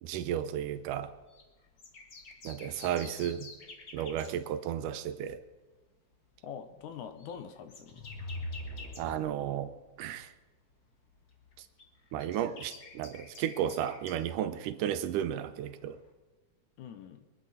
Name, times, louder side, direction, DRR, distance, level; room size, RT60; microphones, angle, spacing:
voice 1, 0.0-1.1 2.4-3.5 3.9-5.4 9.0-9.7 10.0-10.3 12.1-16.0, right 10 dB, 85° right, 2.3 m, -33 dB
sound 1, 0.7-5.1 5.4-5.6 6.1-10.4 10.7-16.1, left 3 dB, 45° left, 1.3 m, -52 dB
voice 2, 6.4-8.1 16.8-17.3, left 7 dB, 75° left, 2.3 m, -44 dB
sound 2, 7.7-9.7, left 1 dB, 20° left, 1.9 m, -41 dB
24.0 x 10.5 x 4.2 m
omnidirectional pair, 3.6 m